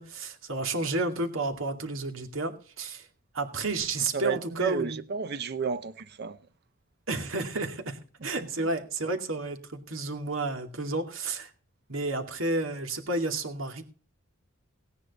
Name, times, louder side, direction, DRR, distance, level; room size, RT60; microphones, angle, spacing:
voice 1, 0.0-3.1 3.3-5.0 7.1-11.5 11.9-13.8, right 2 dB, 75° right, 2.4 m, -31 dB
voice 2, 4.1-6.4 8.2-8.7, right 5 dB, 55° right, 0.8 m, -33 dB
17.5 x 9.8 x 4.1 m
head